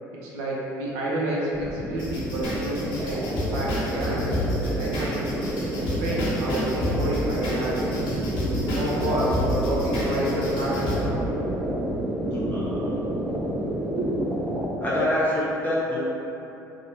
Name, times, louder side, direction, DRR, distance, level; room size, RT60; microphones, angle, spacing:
voice 1, 0.1-3.2 3.5-5.3 5.9-8.0 8.7-11.2 12.5-12.9 13.7-14.3, right 1 dB, 65° right, -5 dB, 0.5 m, -30 dB
sound 1, 1.5-14.7, right 1 dB, 10° right, 0.4 m, -29 dB
sound 2, 2.0-11.0, equal, 50° left, 0.7 m, -30 dB
voice 2, 12.3-12.7 14.8-16.0, left 1 dB, 20° left, -8 dB, 0.7 m, -25 dB
2.7 x 2.0 x 2.7 m, 2.9 s
figure-of-eight pair, 60°, 10 cm